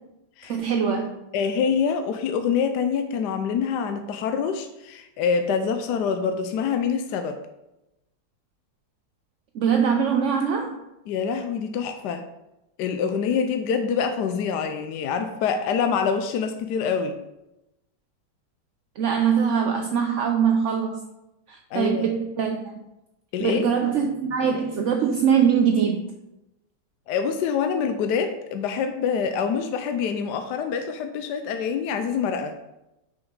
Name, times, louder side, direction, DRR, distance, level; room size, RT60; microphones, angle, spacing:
voice 1, 0.5-1.1 9.5-10.7 19.0-21.0 21.5-22.6 23.4-26.0, right 7 dB, 65° right, 3 dB, 0.7 m, -22 dB
voice 2, 1.3-7.4 11.1-12.2 12.8-17.2 21.7-22.1 23.3-23.7 27.1-32.6, left 6 dB, 75° left, 7 dB, 1.1 m, -25 dB
6.5 x 5.6 x 5.3 m, 0.93 s
omnidirectional pair, 1.9 m